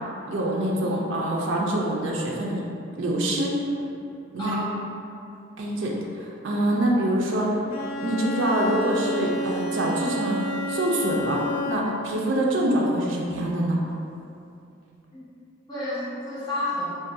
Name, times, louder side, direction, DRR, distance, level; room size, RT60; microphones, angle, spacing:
voice 1, 0.3-2.6 3.0-3.6 4.3-4.6 5.6-7.6 8.0-11.4 11.7-13.8, right 1 dB, 65° right, -2 dB, 0.4 m, -25 dB
voice 2, 4.4-4.8 15.1-15.3 15.7-17.0, left 1 dB, 20° left, -13 dB, 1.1 m, -30 dB
Bowed string instrument, 7.7-12.1, equal, 85° left, 0.3 m, -30 dB
3.7 x 2.2 x 2.6 m, 2.6 s
head